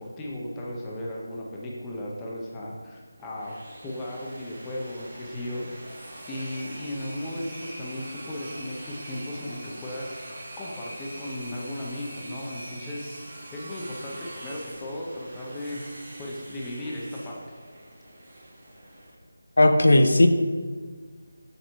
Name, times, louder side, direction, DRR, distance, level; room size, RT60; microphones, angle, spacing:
voice 1, 0.0-5.9 6.3-17.6, left 1 dB, 10° left, -3 dB, 0.4 m, -36 dB
sound 1, 3.2-19.1, right 1 dB, 20° right, 1.2 m, -43 dB
voice 2, 19.6-20.3, left 1 dB, 75° left, 8 dB, 0.5 m, -16 dB
6.5 x 3.0 x 5.5 m, 1.5 s
figure-of-eight pair, 175°, 0 cm